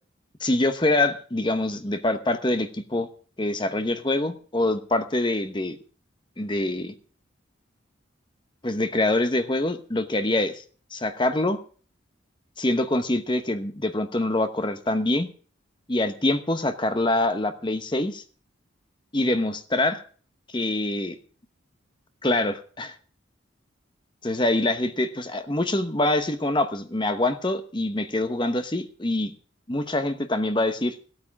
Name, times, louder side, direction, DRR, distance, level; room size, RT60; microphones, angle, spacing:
voice 1, 0.4-3.1 3.4-5.8 6.4-6.9 8.6-10.6 10.9-11.6 12.6-15.3 15.9-18.2 19.1-20.0 20.5-21.2 22.2-22.9 24.2-29.3 29.7-31.0, left 2 dB, 25° left, 9 dB, 1.0 m, -25 dB
15.0 x 8.8 x 6.1 m, 0.42 s
head